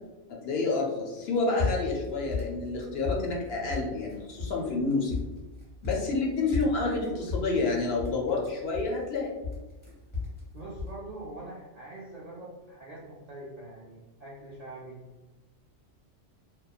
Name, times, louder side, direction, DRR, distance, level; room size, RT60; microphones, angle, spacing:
voice 1, 0.3-5.2 5.8-9.4, left 3 dB, 65° left, -1 dB, 0.7 m, -29 dB
sound 1, 1.2-2.1 2.3-3.4 3.7-4.1 4.4-4.6 4.9-6.2 6.5-9.2 9.4-10.4 10.7-11.0, left 4 dB, 10° left, 0.9 m, -34 dB
voice 2, 10.5-15.0, right 2 dB, 60° right, -6 dB, 0.4 m, -43 dB
3.0 x 2.1 x 2.3 m, 1.1 s
omnidirectional pair, 1.2 m